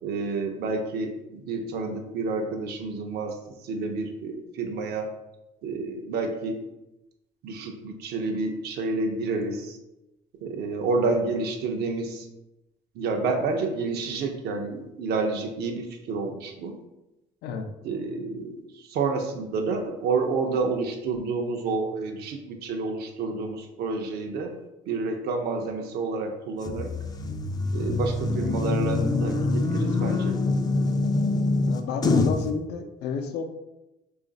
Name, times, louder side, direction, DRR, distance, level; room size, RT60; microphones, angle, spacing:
voice 1, 0.0-5.1 5.6-6.6 7.4-9.8 10.4-12.3 12.9-16.8 17.8-24.5 24.9-26.9 27.7-30.4, right 3 dB, 70° right, 4 dB, 0.6 m, -29 dB
sound 1, 26.6-32.5, left 3 dB, 25° left, 0.4 m, -25 dB
voice 2, 31.6-33.4, left 6 dB, 75° left, 5 dB, 0.5 m, -31 dB
3.2 x 2.4 x 3.8 m, 0.94 s
cardioid pair, 110°, 17 cm